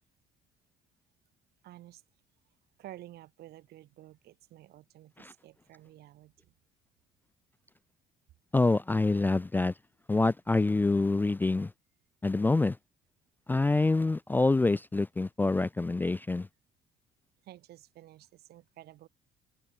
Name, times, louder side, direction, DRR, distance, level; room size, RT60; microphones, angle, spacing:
voice 1, 1.6-2.0 2.8-6.5 17.4-19.1, right 15 dB, 70° right, 1.7 m, -51 dB
voice 2, 8.5-9.7 10.1-11.7 12.2-12.8 13.5-16.5, left 3 dB, 10° left, 0.3 m, -26 dB
open air
cardioid pair, 110°, 17 cm